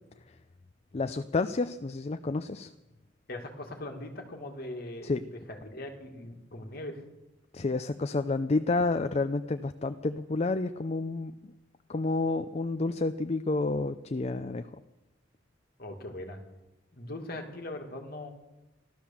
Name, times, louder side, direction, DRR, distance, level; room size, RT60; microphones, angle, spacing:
voice 1, 0.9-2.7 5.0-5.2 7.5-11.5 11.9-14.7, left 3 dB, 35° left, 9 dB, 0.5 m, -30 dB
voice 2, 3.3-7.0 15.8-16.4 16.9-18.3, left 1 dB, 50° left, 3 dB, 2.2 m, -40 dB
15.0 x 12.0 x 7.1 m, 1.0 s
head